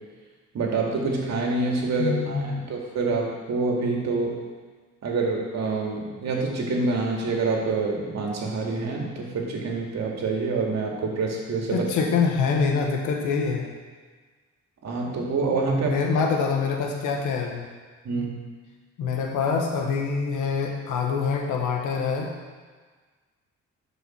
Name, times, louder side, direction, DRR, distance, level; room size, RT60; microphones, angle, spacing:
voice 1, 0.5-4.4 5.0-11.9 14.8-16.2 18.0-18.4, right 3 dB, 60° right, -1 dB, 2.2 m, -26 dB
voice 2, 2.0-2.5 11.7-13.7 15.8-17.7 19.0-22.3, left 5 dB, 90° left, 1 dB, 1.5 m, -25 dB
12.5 x 5.4 x 4.5 m, 1.5 s
cardioid pair, 90°, 30 cm